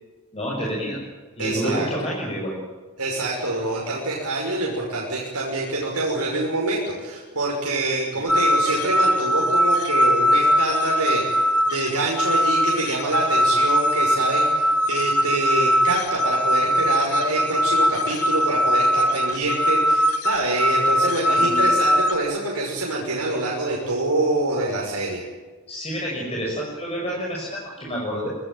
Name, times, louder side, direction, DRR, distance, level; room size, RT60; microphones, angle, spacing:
voice 1, 0.3-1.0 1.4-2.6 8.1-8.2 21.3-21.7 25.7-28.3, equal, 30° left, -3 dB, 6.3 m, -28 dB
voice 2, 1.4-1.9 3.0-25.2, right 2 dB, 80° right, -2 dB, 5.9 m, -26 dB
sound 1, 8.3-22.1, equal, 75° left, 1.8 m, -21 dB
24.5 x 19.0 x 9.0 m, 1.4 s
head